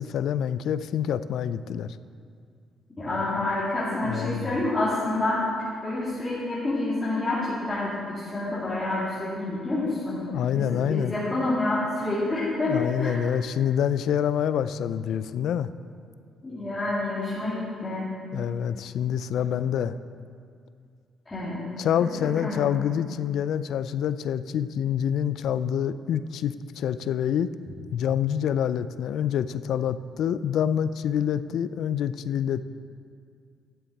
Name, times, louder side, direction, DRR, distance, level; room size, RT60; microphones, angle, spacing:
voice 1, 0.0-2.0 4.0-4.6 10.3-11.1 12.6-15.7 18.3-20.0 21.8-27.5 27.9-32.6, left 9 dB, 75° left, 14 dB, 0.3 m, -27 dB
voice 2, 3.0-10.2 10.6-13.2 16.4-18.1 21.3-21.6 22.0-22.1 22.4-22.6, left 2 dB, 20° left, -10 dB, 2.5 m, -28 dB
11.5 x 7.7 x 4.1 m, 2.3 s
cardioid pair, 90°, 0 cm